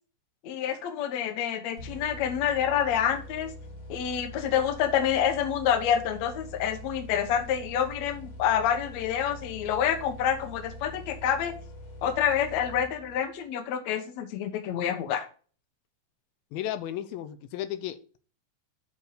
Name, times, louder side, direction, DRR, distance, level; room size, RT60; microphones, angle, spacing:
voice 1, 0.4-3.5 3.9-11.5 12.0-15.3, left 9 dB, 65° left, 7 dB, 2.0 m, -27 dB
sound 1, 1.8-13.4, left 1 dB, 30° left, 1.9 m, -44 dB
voice 2, 16.5-18.2, left 11 dB, 85° left, 11 dB, 2.5 m, -34 dB
7.1 x 4.5 x 6.6 m, 0.39 s
omnidirectional pair, 4.1 m